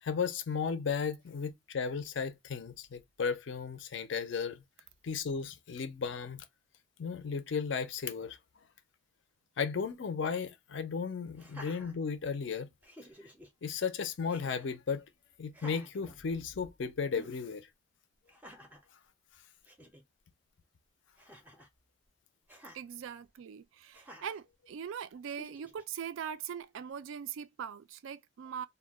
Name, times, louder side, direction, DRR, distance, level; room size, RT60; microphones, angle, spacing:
voice 1, 0.0-4.6 5.0-6.4 7.0-8.4 9.6-12.7 13.2-13.3 13.6-15.1 15.4-17.7, left 6 dB, 60° left, 0.4 m, -35 dB
Laughter, 11.3-12.4 12.8-13.5 14.3-14.8 15.5-16.7 17.1-17.4 18.3-18.9 19.4-19.5 19.6-20.0 21.2-21.7 22.5-22.8 23.9-24.4 25.2-25.8, equal, 10° right, 0.5 m, -52 dB
voice 2, 22.7-28.7, right 8 dB, 70° right, 0.3 m, -41 dB
2.2 x 2.1 x 3.3 m
head